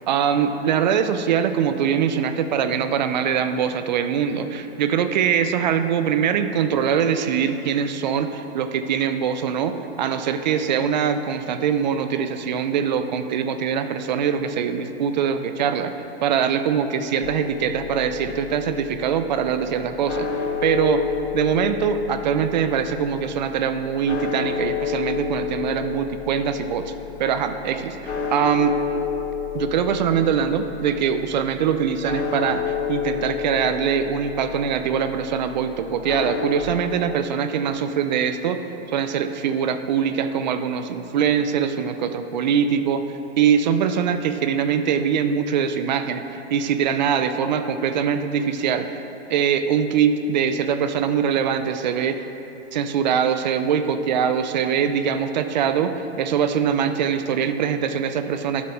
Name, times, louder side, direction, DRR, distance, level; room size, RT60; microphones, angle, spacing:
voice 1, 0.0-15.9 16.2-20.3 20.6-21.0 21.3-26.9 27.2-28.8 29.5-38.6 38.9-43.0 43.4-49.0 49.3-52.3 52.7-55.9 56.2-58.7, right 7 dB, 40° right, 9 dB, 0.6 m, -23 dB
sound 1, 17.2-36.6, left 7 dB, 80° left, 1.7 m, -31 dB
12.5 x 7.5 x 4.4 m, 3.0 s
hypercardioid pair, 160°, 33 cm